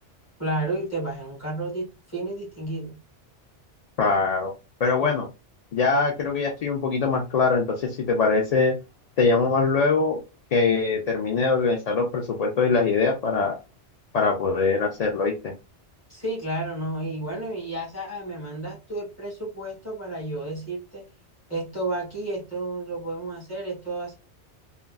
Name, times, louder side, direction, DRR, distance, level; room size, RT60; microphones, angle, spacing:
voice 1, 0.4-2.9 16.1-21.0 21.5-24.2, right 2 dB, 15° left, -4 dB, 1.7 m, -31 dB
voice 2, 4.0-4.5 4.8-5.3 5.7-8.7 9.2-10.2 10.5-13.6 14.1-15.5, left 4 dB, 60° left, 2 dB, 0.4 m, -22 dB
3.5 x 2.3 x 2.3 m, 0.29 s
omnidirectional pair, 1.2 m